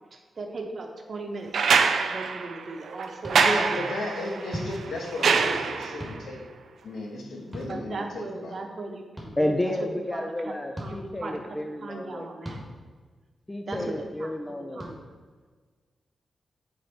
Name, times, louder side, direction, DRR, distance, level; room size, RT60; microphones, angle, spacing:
voice 1, 0.1-3.8 7.7-10.2 10.8-11.4 11.8-12.6 13.7-14.3 14.7-15.0, right 3 dB, 50° right, 3 dB, 0.8 m, -38 dB
sound 1, 1.5-6.2 7.7-7.8, right 5 dB, 70° right, 0.4 m, -25 dB
sound 2, 3.2-3.4 4.5-4.7 6.0-6.2 7.5-7.7 9.2-9.3 10.7-10.9 12.4-12.6 13.7-13.9 14.8-14.9, equal, 5° right, 1.6 m, -36 dB
voice 2, 3.4-6.4 6.8-8.6 13.6-14.0, left 1 dB, 80° left, 0 dB, 1.1 m, -34 dB
voice 3, 9.4-12.3 13.5-14.9, left 1 dB, 15° left, 4 dB, 0.3 m, -31 dB
6.6 x 4.1 x 4.1 m, 1.5 s
wide cardioid pair, 120°, 0 cm